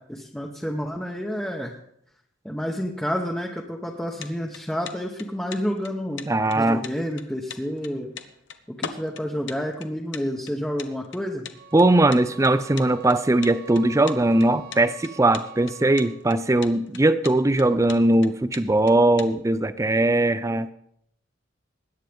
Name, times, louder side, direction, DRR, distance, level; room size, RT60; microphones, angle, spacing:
voice 1, 0.1-1.7 2.4-6.2 6.5-8.1 8.8-11.5, equal, 5° left, -1 dB, 0.9 m, -29 dB
sound 1, 3.9-19.3, left 7 dB, 75° left, 0.9 m, -40 dB
voice 2, 6.3-6.8 11.7-20.7, right 2 dB, 15° right, 14 dB, 0.5 m, -20 dB
sound 2, 11.5-16.3, right 6 dB, 50° right, 1.2 m, -45 dB
20.5 x 9.1 x 3.5 m, 0.73 s
head